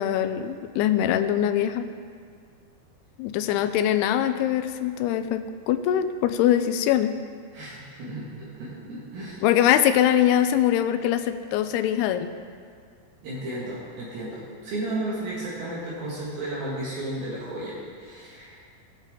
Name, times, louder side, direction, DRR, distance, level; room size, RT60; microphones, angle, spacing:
voice 1, 0.0-1.9 3.2-7.1 9.4-12.3, left 11 dB, 85° left, 9 dB, 2.5 m, -23 dB
voice 2, 7.5-9.4 13.2-18.6, right 1 dB, 65° right, -7 dB, 3.5 m, -34 dB
19.5 x 7.2 x 3.7 m, 2.1 s
omnidirectional pair, 4.7 m